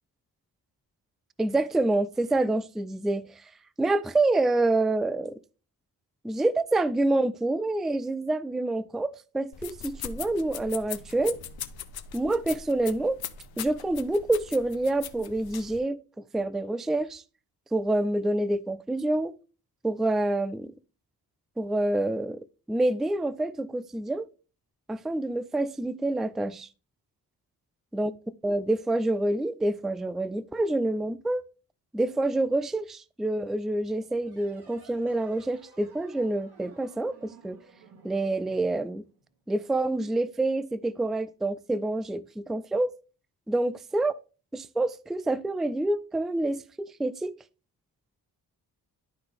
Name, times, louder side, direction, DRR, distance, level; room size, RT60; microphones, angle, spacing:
voice 1, 1.4-3.3 3.8-5.4 6.2-9.1 9.3-11.4 12.1-13.2 13.6-16.0 16.3-17.2 17.7-19.3 19.8-20.7 21.6-24.3 24.9-26.7 27.9-28.1 28.4-31.4 31.9-37.6 38.0-39.0 39.5-42.9 43.5-44.2 44.5-47.3, right 2 dB, ahead, 0.3 m, -27 dB
sound 1, 9.5-15.8, left 9 dB, 75° left, 0.7 m, -40 dB
sound 2, 34.2-39.5, right 4 dB, 75° right, 2.5 m, -55 dB
11.5 x 3.9 x 3.4 m
cardioid pair, 70°, 38 cm